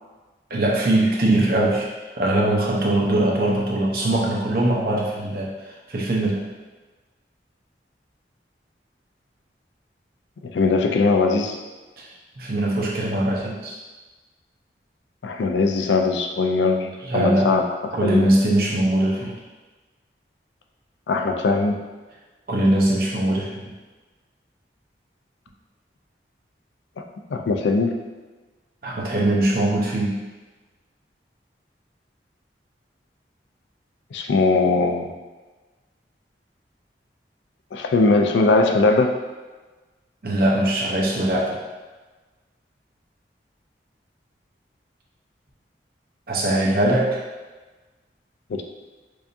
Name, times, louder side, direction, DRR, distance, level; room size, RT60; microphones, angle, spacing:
voice 1, 0.5-1.9 2.2-5.5 5.9-6.4 12.0-12.1 12.4-13.8 17.0-17.5 17.9-19.4 22.5-23.6 28.8-30.2 40.2-41.6 46.3-47.2, right 1 dB, 55° right, -3 dB, 0.7 m, -21 dB
voice 2, 10.4-11.6 15.2-17.7 18.0-18.3 21.1-21.8 27.3-28.0 34.1-35.1 37.7-39.1 48.5-48.6, left 3 dB, 85° left, 4 dB, 0.4 m, -20 dB
4.7 x 2.6 x 2.5 m, 1.3 s
head